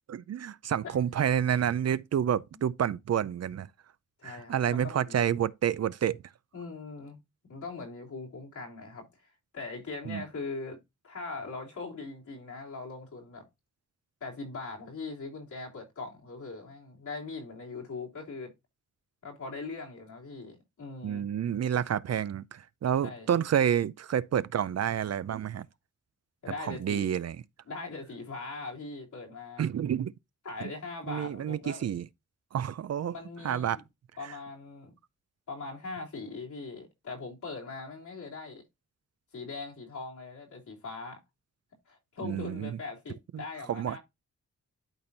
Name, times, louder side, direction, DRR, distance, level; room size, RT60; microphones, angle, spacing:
voice 1, 0.1-3.7 4.2-6.2 10.1-10.2 21.0-25.7 26.7-27.4 29.6-30.1 30.6-30.7 31.1-32.1 32.5-33.2 33.4-33.8 42.2-42.8 43.3-44.0, right 9 dB, 60° right, 0.5 m, -29 dB
voice 2, 4.2-5.3 6.5-10.8 11.0-13.5 14.2-18.5 19.2-21.3 23.0-23.3 26.4-27.1 27.7-29.6 30.4-31.8 33.1-33.8 34.2-34.9 35.5-38.6 39.3-41.2 41.9-44.0, left 3 dB, 80° left, 3.3 m, -41 dB
12.0 x 4.3 x 2.7 m
cardioid pair, 75°, 30 cm